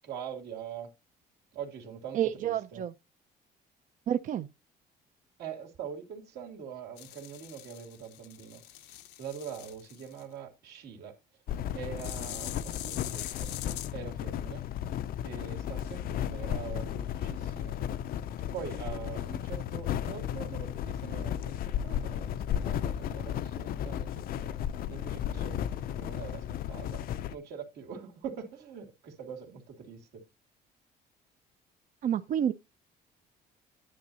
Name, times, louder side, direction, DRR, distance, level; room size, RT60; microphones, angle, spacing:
voice 1, 0.0-0.9 1.5-2.8 5.4-8.9 9.2-11.1 11.7-13.6 13.9-14.7 15.2-17.8 18.5-24.6 24.9-27.0 27.3-30.2, right 7 dB, 75° right, 2.8 m, -43 dB
voice 2, 2.1-2.9 4.1-4.5 32.0-32.5, right 10 dB, 50° right, 0.5 m, -29 dB
sound 1, 7.0-10.2 12.0-13.9, left 14 dB, 90° left, 0.8 m, -43 dB
sound 2, 11.5-27.3, left 10 dB, 60° left, 0.5 m, -34 dB
10.0 x 9.1 x 2.8 m
cardioid pair, 110°, 17 cm